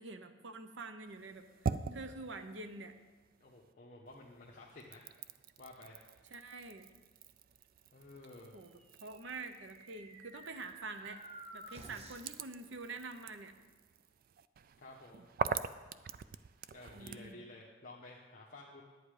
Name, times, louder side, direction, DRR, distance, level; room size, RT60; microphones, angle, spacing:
voice 1, 0.0-2.9 6.3-6.9 8.5-11.2 11.5-13.5 16.9-17.4, right 3 dB, 70° right, 9 dB, 0.8 m, -46 dB
sound 1, 1.1-3.7 4.1-17.3, right 6 dB, 50° right, 0.3 m, -44 dB
voice 2, 3.4-5.1 5.6-6.0 7.9-8.5 14.8-15.3 16.7-18.8, left 2 dB, 45° left, -3 dB, 1.0 m, -53 dB
sound 2, 8.8-12.4, right 2 dB, 30° right, 0.9 m, -53 dB
11.0 x 8.9 x 4.9 m, 1.3 s
head